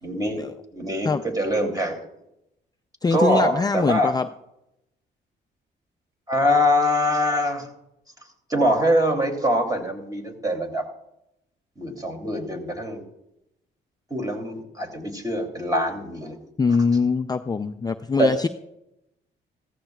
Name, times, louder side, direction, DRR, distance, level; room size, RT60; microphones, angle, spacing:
voice 1, 0.0-0.4 0.7-2.0 3.1-4.1 6.3-7.7 8.5-10.8 11.8-13.0 14.1-16.4 18.2-18.3, equal, 20° right, 2 dB, 2.8 m, -23 dB
voice 2, 3.0-4.3 16.6-18.5, left 4 dB, 20° left, 8 dB, 0.4 m, -22 dB
15.0 x 14.5 x 2.4 m, 0.84 s
cardioid pair, 90°, 20 cm